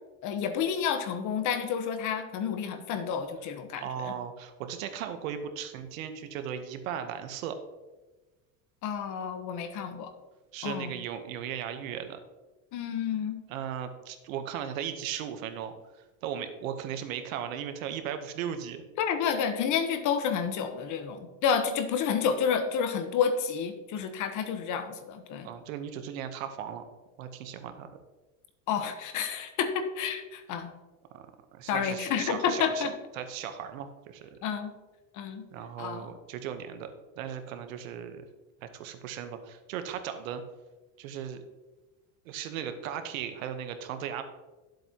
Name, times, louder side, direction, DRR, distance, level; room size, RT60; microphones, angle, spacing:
voice 1, 0.2-4.1 8.8-10.1 10.6-10.9 12.7-13.4 19.0-25.5 28.7-30.7 31.7-32.9 34.4-34.7 35.1-35.4 35.8-36.1, left 7 dB, 50° left, 8 dB, 1.2 m, -30 dB
voice 2, 3.8-7.6 10.5-12.2 13.5-15.7 16.2-18.8 25.4-26.8 27.2-27.9 31.1-31.2 31.5-32.9 33.2-34.4 35.5-36.9 37.2-38.2 38.6-40.4 41.0-41.4 42.2-44.2, right 9 dB, 90° right, 8 dB, 1.1 m, -37 dB
12.5 x 7.7 x 3.0 m, 1.2 s
supercardioid pair, 135°, 39 cm